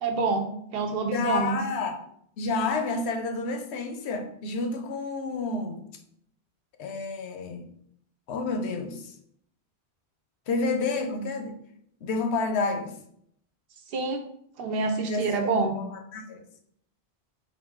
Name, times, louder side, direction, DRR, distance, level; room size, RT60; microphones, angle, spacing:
voice 1, 0.0-1.6 13.9-14.2 14.6-15.7, right 4 dB, 65° right, 5 dB, 0.8 m, -27 dB
voice 2, 1.1-2.0 2.4-5.8 6.8-7.7 8.3-9.1 10.5-11.6 12.0-12.9 15.1-16.4, left 3 dB, 85° left, 6 dB, 0.9 m, -30 dB
3.7 x 2.5 x 3.5 m, 0.70 s
omnidirectional pair, 1.1 m